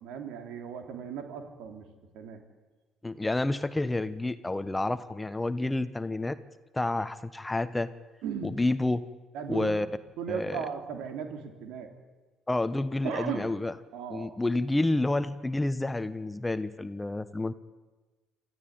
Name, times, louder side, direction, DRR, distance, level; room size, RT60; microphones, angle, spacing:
voice 1, 0.0-1.8 2.1-2.4 8.2-8.5 9.3-9.8 10.2-11.9 13.0-13.5 13.9-14.4, right 7 dB, 70° right, 5 dB, 3.3 m, -36 dB
voice 2, 3.0-6.4 6.7-7.9 8.4-9.0 9.5-9.9 10.3-10.7 12.5-13.7 14.1-17.5, left 2 dB, 15° left, 13 dB, 1.2 m, -29 dB
27.0 x 14.5 x 9.6 m, 1.2 s
hypercardioid pair, 55°, 0 cm